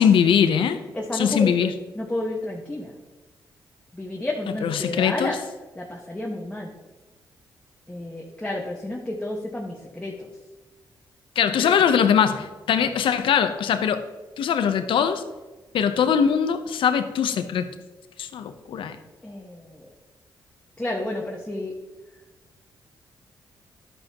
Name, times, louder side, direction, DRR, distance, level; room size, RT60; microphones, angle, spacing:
voice 1, 0.0-0.8 1.1-1.7 4.5-5.4 11.4-14.0 14.4-15.2 15.7-17.7 18.2-19.0, left 7 dB, 80° left, 9 dB, 0.8 m, -21 dB
voice 2, 0.9-1.6 2.0-2.9 3.9-5.3 5.7-6.7 7.9-10.3 11.6-11.7 19.2-19.6 20.8-21.7, left 1 dB, 15° left, -2 dB, 1.5 m, -31 dB
11.0 x 7.9 x 3.0 m, 1.2 s
cardioid pair, 65°, 9 cm